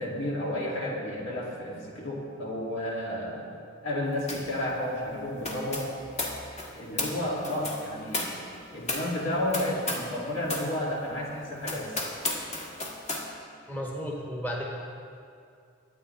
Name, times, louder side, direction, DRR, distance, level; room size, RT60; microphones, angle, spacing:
voice 1, 0.0-3.5 3.8-5.9 6.7-8.3 8.7-11.9, left 1 dB, 70° left, -4 dB, 2.7 m, -31 dB
sound 1, 4.3-4.6 4.8-10.2 10.5-10.7 11.2-11.3 11.6-13.3, left 2 dB, 35° left, 1.6 m, -34 dB
voice 2, 13.7-14.7, equal, 10° left, -2 dB, 1.3 m, -33 dB
22.0 x 8.8 x 3.4 m, 2.4 s
head